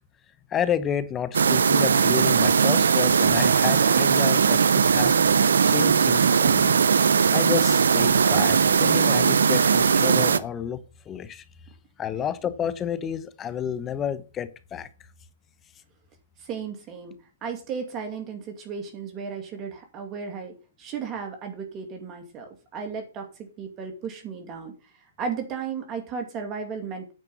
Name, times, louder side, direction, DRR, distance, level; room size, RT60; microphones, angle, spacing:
voice 1, 0.5-5.2 5.7-6.8 7.3-11.4 12.0-14.9, left 8 dB, 20° left, 0.9 m, -30 dB
sound 1, 1.3-10.4, right 6 dB, 85° right, 0.7 m, -19 dB
voice 2, 16.4-17.1 17.4-24.7 25.2-27.1, right 6 dB, 25° right, 2.4 m, -35 dB
9.3 x 5.1 x 7.0 m
hypercardioid pair, 140°, 0 cm